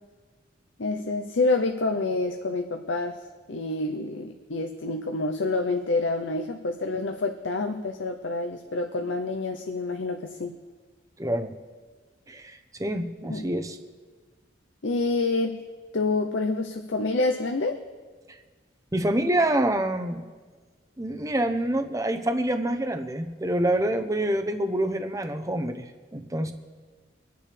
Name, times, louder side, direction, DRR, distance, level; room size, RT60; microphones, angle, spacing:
voice 1, 0.8-3.2 3.5-10.5 13.3-13.5 14.8-15.6 15.9-17.8, left 3 dB, 85° left, 4 dB, 0.8 m, -27 dB
voice 2, 11.2-11.5 12.3-13.8 18.9-20.2 21.0-26.5, right 1 dB, 15° right, 7 dB, 0.8 m, -27 dB
24.5 x 10.0 x 3.4 m, 1.4 s
head